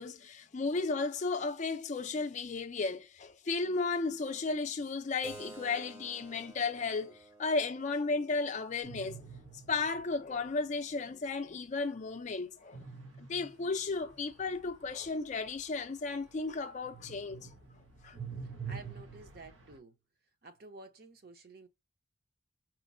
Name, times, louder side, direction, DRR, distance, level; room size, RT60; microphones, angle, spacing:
voice 1, 0.0-9.2 9.7-12.8 13.2-17.5 18.0-18.2, left 3 dB, 35° left, 0.4 m, -34 dB
Keyboard (musical), 5.2-10.3, right 2 dB, 10° right, 0.6 m, -54 dB
sound 1, 8.8-10.5 12.7-16.5 16.8-19.8, right 6 dB, 85° right, 1.0 m, -47 dB
voice 2, 18.6-20.0 20.4-21.7, right 3 dB, 50° right, 0.7 m, -51 dB
4.3 x 2.0 x 2.5 m
head